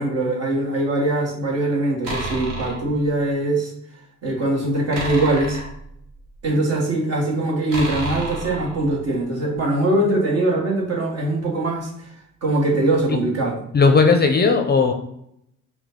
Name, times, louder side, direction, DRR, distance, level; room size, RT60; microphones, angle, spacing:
voice 1, 0.0-3.7 4.2-5.6 6.4-12.1 12.4-13.6, right 2 dB, 55° right, -2 dB, 1.5 m, -22 dB
sound 1, 2.0-2.9 4.9-6.4 7.7-9.1, right 2 dB, 70° right, 1.4 m, -31 dB
voice 2, 13.7-14.9, left 4 dB, 35° left, 5 dB, 0.6 m, -16 dB
5.1 x 2.3 x 3.7 m, 0.73 s
cardioid pair, 90°, 30 cm